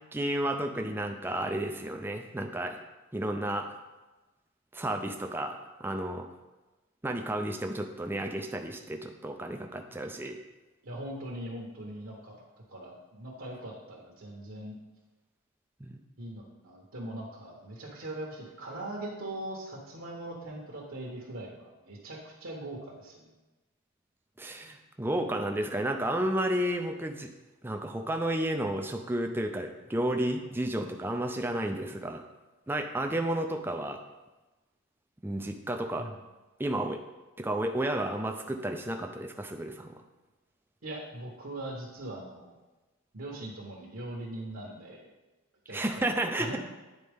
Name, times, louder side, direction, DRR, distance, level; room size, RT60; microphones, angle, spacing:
voice 1, 0.1-2.8 3.1-3.7 4.7-6.2 7.0-10.4 15.8-16.0 24.4-27.3 27.6-32.2 32.7-34.0 35.2-36.1 36.6-37.0 37.4-40.0 45.7-46.6, right 1 dB, 10° right, 4 dB, 0.4 m, -32 dB
voice 2, 10.8-12.4 12.7-14.8 16.2-23.3 36.0-36.2 40.8-42.6 43.1-45.1 45.7-46.6, right 1 dB, 65° right, -2 dB, 1.1 m, -41 dB
9.3 x 4.1 x 3.5 m, 1.1 s
head